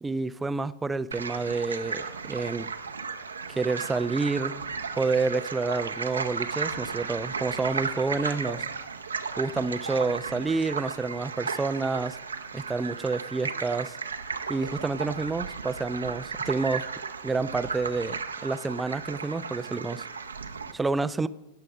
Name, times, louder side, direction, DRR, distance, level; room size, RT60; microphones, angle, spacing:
voice 1, 0.0-2.7 3.5-4.6 5.0-8.6 9.4-12.2 12.5-14.0 14.5-16.9 17.2-20.0 20.7-21.3, right 3 dB, 10° right, 0.4 m, -29 dB
sound 1, 1.1-20.7, right 5 dB, 75° right, 0.7 m, -35 dB
17.5 x 6.4 x 5.1 m
figure-of-eight pair, 90°, 0 cm